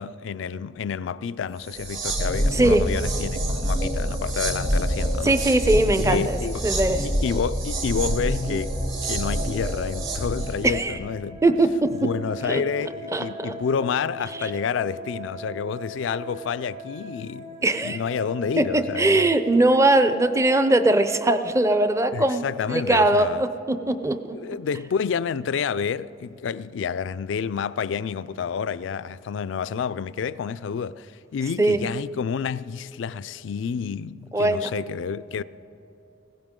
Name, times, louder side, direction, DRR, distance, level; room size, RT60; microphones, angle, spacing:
voice 1, 0.0-5.4 6.0-6.6 7.0-11.4 11.9-19.4 22.1-23.4 24.3-35.4, left 6 dB, 65° left, 0.3 m, -29 dB
sound 1, 1.7-10.7, right 1 dB, 75° right, 1.7 m, -26 dB
voice 2, 2.5-2.8 5.2-7.0 10.6-11.0 11.4-11.9 12.5-12.6 13.1-13.5 17.6-18.0 18.6-24.4 31.6-31.8 34.3-34.7, right 2 dB, 15° right, 0.5 m, -21 dB
sound 2, 8.0-21.9, right 1 dB, 55° right, 3.6 m, -41 dB
20.0 x 16.5 x 3.7 m
head